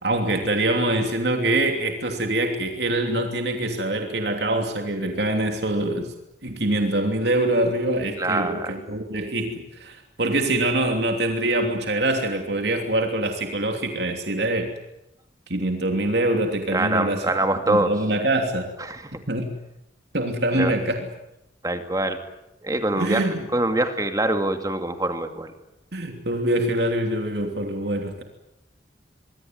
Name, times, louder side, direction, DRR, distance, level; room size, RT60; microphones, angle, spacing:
voice 1, 0.0-6.1 6.4-14.7 15.5-17.2 17.7-18.7 19.3-19.5 20.1-21.1 22.9-23.5 25.9-28.2, right 1 dB, 70° right, 4 dB, 3.0 m, -24 dB
voice 2, 8.2-8.7 16.7-17.9 18.8-19.1 20.5-20.7 21.6-22.2 22.6-25.5, right 2 dB, 20° right, 6 dB, 2.4 m, -24 dB
25.5 x 23.0 x 9.5 m, 0.91 s
head